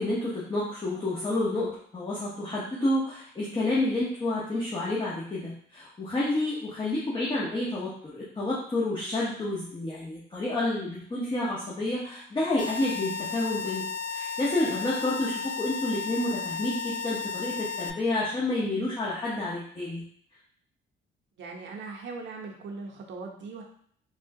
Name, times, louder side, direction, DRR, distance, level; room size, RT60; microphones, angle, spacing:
voice 1, 0.0-13.8 14.1-20.0, left 2 dB, 25° left, -8 dB, 0.9 m, -29 dB
sound 1, 12.6-17.9, left 6 dB, 40° left, 0.4 m, -34 dB
voice 2, 21.4-23.6, right 4 dB, 70° right, 0 dB, 0.7 m, -39 dB
3.5 x 2.3 x 2.7 m, 0.62 s
cardioid pair, 90°, 20 cm